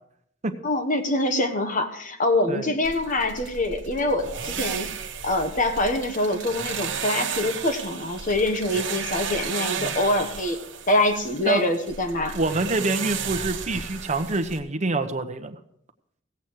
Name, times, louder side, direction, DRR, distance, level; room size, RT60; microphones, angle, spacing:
voice 1, 0.6-4.9 5.2-10.6 10.9-12.4, left 1 dB, 45° left, 6 dB, 1.3 m, -24 dB
sound 1, 2.8-14.6, right 7 dB, 70° right, 1.3 m, -34 dB
voice 2, 12.3-15.6, right 2 dB, 35° right, 7 dB, 1.0 m, -26 dB
16.5 x 8.2 x 4.7 m, 0.70 s
head